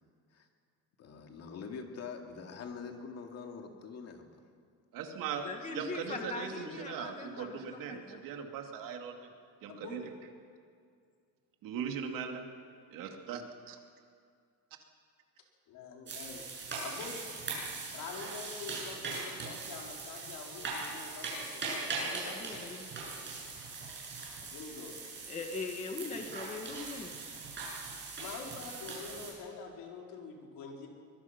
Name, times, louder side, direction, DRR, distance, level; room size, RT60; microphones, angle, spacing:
voice 1, 1.0-4.4, left 5 dB, 45° left, 3 dB, 2.4 m, -44 dB
voice 2, 4.9-9.3 9.6-10.0 11.6-12.4 12.9-13.4 13.7-13.8, right 7 dB, 70° right, 3 dB, 2.6 m, -39 dB
voice 3, 5.4-8.2 22.1-22.9 25.3-27.1, left 4 dB, 20° left, 3 dB, 1.7 m, -41 dB
voice 4, 9.7-10.0 15.7-16.4 16.8-17.1 17.9-22.2 24.4-24.9 28.2-30.9, left 5 dB, 70° left, 0 dB, 4.6 m, -46 dB
sound 1, 16.1-29.3, right 3 dB, 30° right, 7.7 m, -40 dB
24.0 x 21.5 x 5.9 m, 2.2 s
cardioid pair, 170°, 34 cm